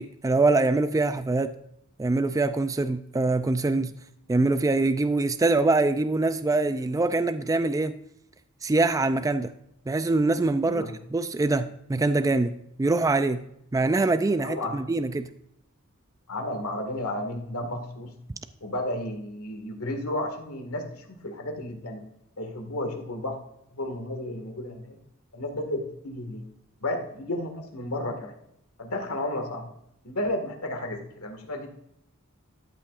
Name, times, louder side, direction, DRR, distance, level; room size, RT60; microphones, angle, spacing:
voice 1, 0.0-1.5 2.0-3.9 4.3-8.0 8.6-9.5 9.9-10.8 11.1-13.4 13.7-15.3, right 3 dB, 15° right, 0.3 m, -24 dB
voice 2, 14.4-14.8 16.3-18.1 18.6-22.0 22.4-23.4 23.7-25.0 25.3-26.4 26.8-28.3 28.8-29.7 30.0-31.7, left 1 dB, 85° left, 1.9 m, -32 dB
13.5 x 8.6 x 2.5 m
head